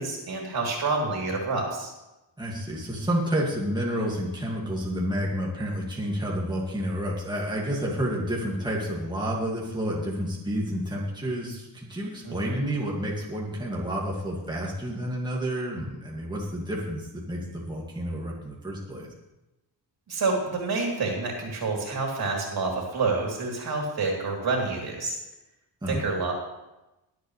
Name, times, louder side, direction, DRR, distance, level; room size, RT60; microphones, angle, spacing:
voice 1, 0.0-1.9 12.2-12.6 20.1-25.2 25.9-26.3, right 3 dB, 60° right, -1 dB, 3.5 m, -28 dB
voice 2, 2.4-19.1 25.8-26.0, equal, 10° right, -4 dB, 2.2 m, -30 dB
21.5 x 8.2 x 3.3 m, 0.98 s
wide cardioid pair, 125°, 43 cm